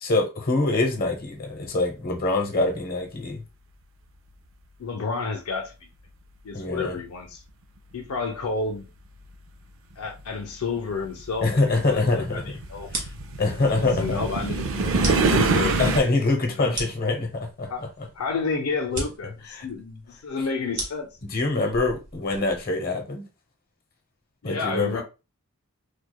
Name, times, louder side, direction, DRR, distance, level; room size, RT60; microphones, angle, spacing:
voice 1, 0.0-3.4 6.5-6.9 11.4-12.4 12.9-13.1 13.4-14.2 15.8-17.7 18.0-18.1 19.5-19.7 21.3-23.2 24.4-25.0, left 2 dB, 40° left, 0.9 m, -24 dB
voice 2, 4.8-5.7 6.4-7.4 7.9-8.9 10.0-12.9 13.6-14.7 15.0-15.8 16.5-16.8 17.7-17.9 18.1-21.1 24.4-25.0, left 4 dB, 75° left, 0.5 m, -30 dB
sound 1, 8.8-8.9 9.9-16.0, right 4 dB, 60° right, 0.4 m, -26 dB
sound 2, 12.9-22.7, right 2 dB, 35° right, 1.3 m, -37 dB
4.6 x 2.2 x 2.2 m
head